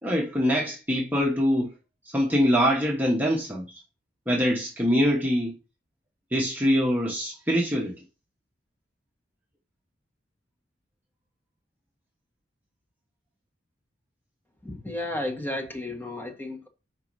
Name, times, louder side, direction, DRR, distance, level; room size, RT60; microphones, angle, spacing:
voice 1, 0.0-1.7 2.1-3.6 4.3-5.5 6.3-8.0, equal, 10° right, 1.2 m, -24 dB
voice 2, 14.6-16.7, left 1 dB, 10° left, 1.6 m, -33 dB
5.3 x 4.7 x 6.2 m
head